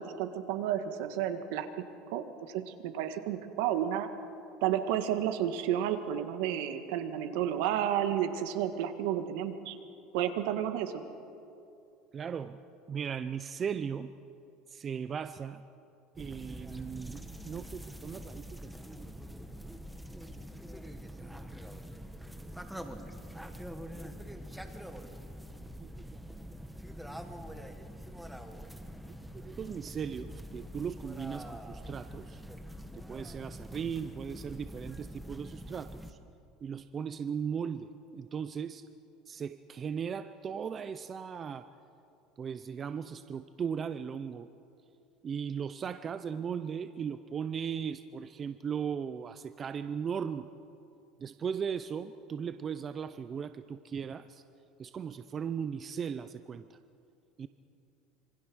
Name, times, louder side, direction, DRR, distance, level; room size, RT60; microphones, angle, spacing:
voice 1, 0.0-1.7 2.1-4.1 4.6-9.8 10.1-11.0, right 10 dB, 75° right, 8 dB, 1.8 m, -31 dB
voice 2, 12.1-12.6 12.9-14.1 14.7-15.6 16.2-19.1 20.7-21.2 22.4-22.5 25.8-26.2 29.4-32.4 32.9-36.2 36.6-38.8 39.3-41.7 42.4-44.5 45.2-50.5 51.2-54.4 54.8-56.6 57.4-57.5, right 7 dB, 25° right, 12 dB, 0.5 m, -37 dB
sound 1, 16.1-36.1, equal, ahead, 1.1 m, -45 dB
26.5 x 24.5 x 6.2 m, 2.7 s
cardioid pair, 160°, 0 cm